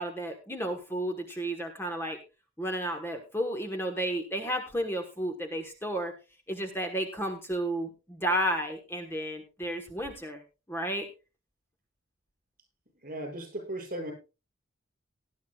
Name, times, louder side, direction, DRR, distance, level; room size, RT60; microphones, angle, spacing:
voice 1, 0.0-2.2 2.6-6.1 6.5-10.4 10.7-11.1, right 1 dB, 10° left, 5 dB, 1.2 m, -32 dB
voice 2, 13.0-14.1, right 1 dB, 45° right, 2 dB, 6.3 m, -36 dB
18.5 x 11.5 x 2.3 m, 0.29 s
head